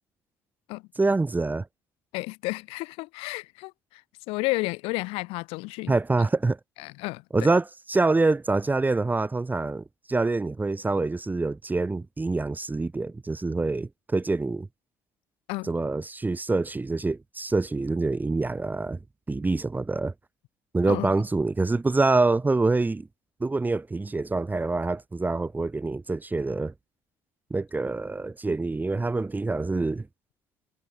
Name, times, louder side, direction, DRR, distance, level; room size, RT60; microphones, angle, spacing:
voice 1, 1.0-1.7 5.9-6.6 7.3-14.7 15.6-19.0 19.3-20.1 20.7-23.1 23.4-26.7 27.5-30.1, right 3 dB, 20° right, 1.1 m, -26 dB
voice 2, 2.1-4.0 4.3-6.0 6.8-7.5 15.5-15.7 20.9-21.1, left 24 dB, 85° left, 7.6 m, -32 dB
supercardioid pair, 75°, 9 cm